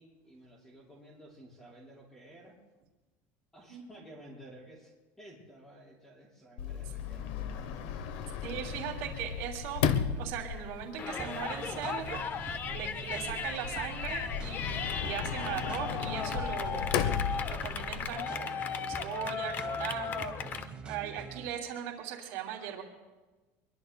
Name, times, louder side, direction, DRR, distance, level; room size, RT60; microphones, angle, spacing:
voice 1, 0.0-2.6 3.5-8.3 8.6-8.7, right 1 dB, 5° left, -4 dB, 5.1 m, -53 dB
Sliding door, 6.6-18.1, left 7 dB, 85° left, 1.0 m, -36 dB
voice 2, 8.4-9.8 10.1-16.9 17.5-22.8, right 9 dB, 70° right, 0 dB, 2.8 m, -39 dB
Yell, 11.0-20.7, left 7 dB, 30° left, 0.7 m, -37 dB
sound 1, 11.2-21.5, right 4 dB, 15° right, 1.1 m, -45 dB
24.0 x 22.5 x 2.2 m, 1.2 s
cardioid pair, 160°, 6 cm